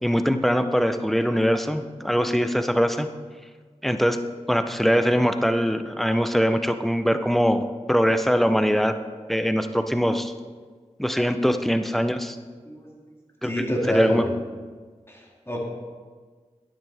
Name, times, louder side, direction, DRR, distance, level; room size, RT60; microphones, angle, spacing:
voice 1, 0.0-3.1 3.8-4.2 4.5-8.9 9.3-10.3 11.0-12.4 13.4-13.5 13.9-14.2, equal, ahead, 8 dB, 0.6 m, -22 dB
voice 2, 13.4-14.3 15.1-15.6, equal, 20° left, -2 dB, 2.4 m, -26 dB
9.7 x 9.1 x 3.5 m, 1.5 s
cardioid pair, 40°, 12 cm